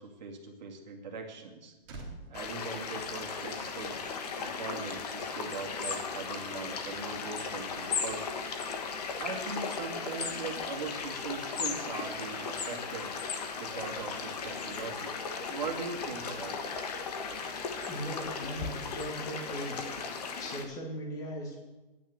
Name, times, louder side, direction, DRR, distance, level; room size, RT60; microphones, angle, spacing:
voice 1, 0.0-1.7 2.3-4.0 4.4-8.5 9.2-13.1 13.6-15.1 15.5-17.0, right 4 dB, 45° right, 1 dB, 2.1 m, -40 dB
sound 1, 1.4-3.8 4.1-4.3, right 2 dB, 25° right, 2.5 m, -49 dB
sound 2, 2.3-20.6, left 5 dB, 40° left, 1.4 m, -36 dB
voice 2, 17.9-19.8 20.1-21.6, right 1 dB, 10° left, 0 dB, 1.8 m, -39 dB
10.0 x 9.5 x 6.5 m, 1.1 s
hypercardioid pair, 160°, 30 cm